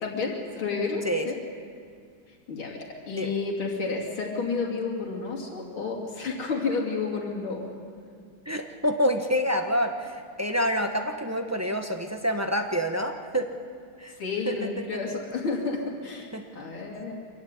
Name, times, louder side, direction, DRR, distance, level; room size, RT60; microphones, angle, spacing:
voice 1, 0.0-1.4 2.5-7.7 14.2-17.1, left 4 dB, 85° left, -1 dB, 3.7 m, -31 dB
voice 2, 8.5-13.5 14.0-14.1 14.5-14.6 15.1-15.2 16.3-16.4, equal, 10° right, 4 dB, 0.8 m, -27 dB
24.5 x 15.0 x 9.8 m, 2.2 s
omnidirectional pair, 2.2 m